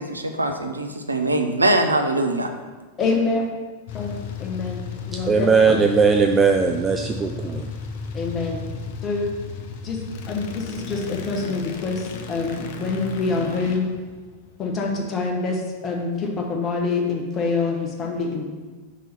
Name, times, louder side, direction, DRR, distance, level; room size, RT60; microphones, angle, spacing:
voice 1, 0.0-2.5, right 1 dB, 80° right, 5 dB, 0.5 m, -22 dB
voice 2, 3.0-3.5 3.9-5.5 8.1-8.6 9.0-9.3 9.8-10.0 10.3-13.9 14.6-18.5, left 3 dB, 25° left, 0 dB, 1.2 m, -26 dB
sound 1, 3.9-15.0, left 5 dB, 50° left, 0.6 m, -35 dB
voice 3, 5.3-7.7, right 5 dB, 20° right, 4 dB, 0.3 m, -19 dB
5.5 x 3.6 x 5.8 m, 1.3 s
figure-of-eight pair, 90°, 0 cm